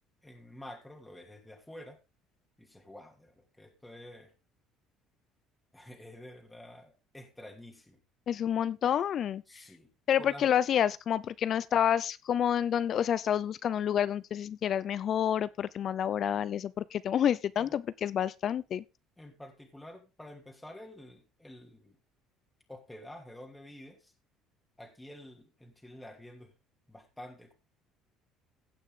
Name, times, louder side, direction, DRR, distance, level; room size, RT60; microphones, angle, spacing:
voice 1, 0.2-2.0 2.6-4.3 5.7-8.0 9.5-9.9 10.2-10.5 17.6-17.7 19.2-22.0 22.7-24.1 24.8-26.5 26.9-27.5, left 1 dB, 5° left, 2.7 m, -49 dB
voice 2, 8.3-9.6 10.1-18.8, left 9 dB, 50° left, 0.6 m, -29 dB
16.5 x 6.0 x 3.8 m
cardioid pair, 115°, 0 cm